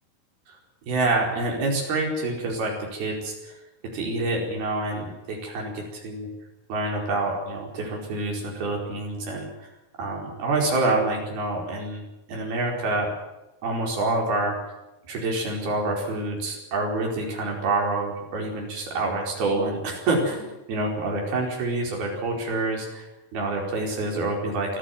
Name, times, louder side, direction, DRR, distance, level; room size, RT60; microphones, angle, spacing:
voice 1, 0.8-3.5 3.9-6.3 6.7-9.7 10.0-12.0 12.3-13.1 13.6-14.6 15.1-24.8, right 2 dB, 85° right, 0 dB, 6.7 m, -27 dB
23.0 x 15.5 x 9.3 m, 0.97 s
omnidirectional pair, 4.3 m